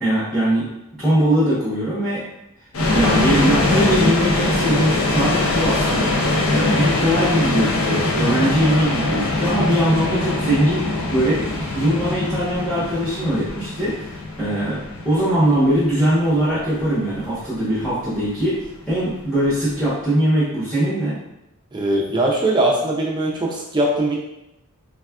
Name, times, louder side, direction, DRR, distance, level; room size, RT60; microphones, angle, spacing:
voice 1, 0.0-0.7 1.0-2.2 2.9-6.2 6.5-11.5 11.7-21.2, right 1 dB, ahead, -11 dB, 0.8 m, -21 dB
sound 1, 2.7-19.7, left 2 dB, 70° left, 0.5 m, -22 dB
voice 2, 21.7-24.2, right 1 dB, 20° right, -2 dB, 0.4 m, -20 dB
3.4 x 2.3 x 2.3 m, 0.90 s
head